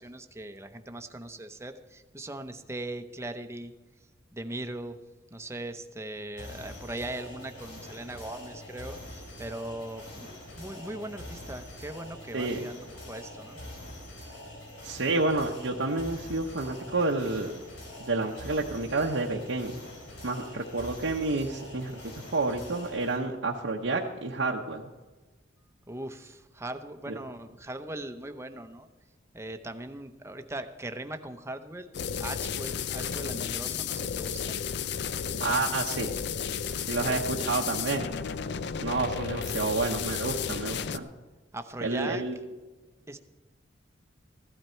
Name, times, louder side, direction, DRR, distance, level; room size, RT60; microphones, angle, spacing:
voice 1, 0.0-3.7 4.3-5.0 5.3-13.6 25.9-28.9 29.3-31.9 32.2-34.6 37.0-37.2 41.5-42.2 43.1-43.2, right 1 dB, 15° right, 7 dB, 0.8 m, -39 dB
sound 1, 6.4-23.2, left 1 dB, 90° left, 3.7 m, -44 dB
voice 2, 14.8-17.6 18.0-19.8 20.2-22.0 22.3-24.9 27.1-27.2 35.4-36.1 36.7-38.1 38.8-41.1 41.8-42.4, right 3 dB, 85° right, -1 dB, 1.0 m, -29 dB
sound 2, 31.9-41.0, left 7 dB, 65° left, 0.5 m, -33 dB
15.5 x 12.0 x 4.5 m, 1.2 s
head